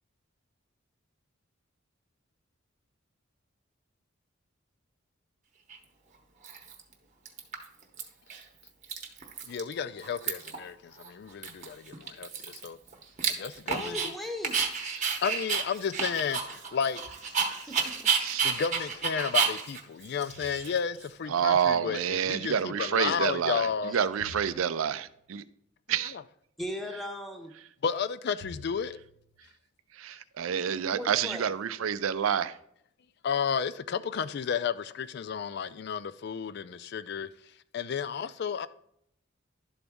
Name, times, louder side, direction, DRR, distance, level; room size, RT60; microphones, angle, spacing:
Dog, 5.7-5.8 6.4-6.9 7.3-8.0 8.3-8.4 8.7-9.7 10.0-10.6 11.0-11.1 11.4-14.1 14.4-21.1, right 6 dB, 35° right, 0.9 m, -31 dB
voice 1, 9.5-12.8 13.3-14.1 15.2-17.0 18.4-23.9 27.8-29.0 33.2-37.3 37.7-38.7, left 6 dB, 55° left, 0.3 m, -32 dB
voice 2, 13.7-14.6 17.4-18.0 18.3-18.5 26.6-27.5 30.9-31.5, left 1 dB, ahead, 0.7 m, -38 dB
voice 3, 18.2-18.5 21.3-25.4 25.9-26.1 29.9-32.6, right 8 dB, 85° right, 0.4 m, -28 dB
sound 1, 20.3-21.1 24.2-25.3 28.4-29.3, left 2 dB, 85° left, 1.1 m, -50 dB
11.5 x 4.0 x 3.5 m
head